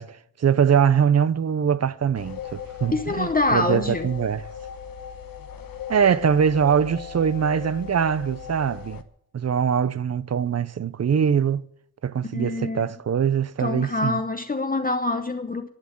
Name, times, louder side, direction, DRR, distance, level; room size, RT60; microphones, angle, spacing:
voice 1, 0.0-4.4 5.9-9.0 9.3-11.6 12.0-14.2, right 7 dB, 45° right, 0.5 m, -22 dB
sound 1, 2.2-9.0, left 8 dB, 65° left, 1.1 m, -38 dB
voice 2, 2.9-4.1 12.3-12.9 13.6-15.7, left 2 dB, 25° left, 0.8 m, -25 dB
11.5 x 8.4 x 8.6 m
wide cardioid pair, 150°, 37 cm